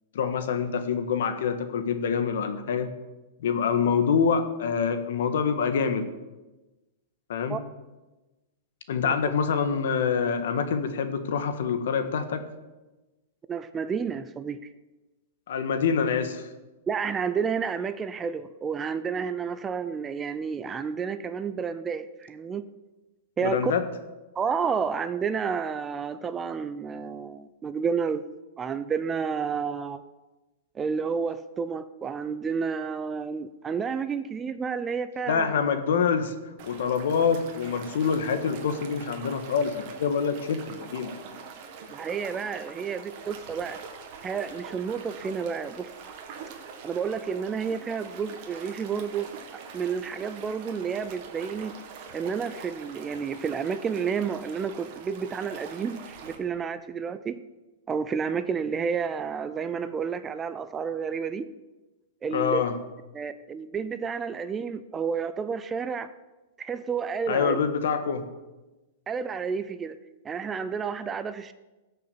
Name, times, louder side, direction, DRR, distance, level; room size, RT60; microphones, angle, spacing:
voice 1, 0.1-2.9 3.4-6.1 7.3-7.6 8.9-12.4 15.5-16.5 23.4-23.8 35.3-36.3 36.6-41.1 62.3-62.7 67.3-68.3, left 6 dB, 65° left, 9 dB, 1.6 m, -26 dB
voice 2, 13.5-14.7 16.9-22.6 23.4-23.7 24.4-28.3 28.6-30.0 30.7-35.6 41.9-43.8 44.2-45.9 46.8-49.3 49.7-51.7 52.1-57.4 57.9-61.5 62.2-62.6 63.1-66.1 66.6-67.6 69.1-70.0 70.2-71.5, right 6 dB, 15° right, 12 dB, 0.4 m, -30 dB
sound 1, 36.6-56.4, right 6 dB, 35° right, 2.0 m, -44 dB
17.0 x 6.7 x 7.0 m, 1.1 s
supercardioid pair, 170°, 0 cm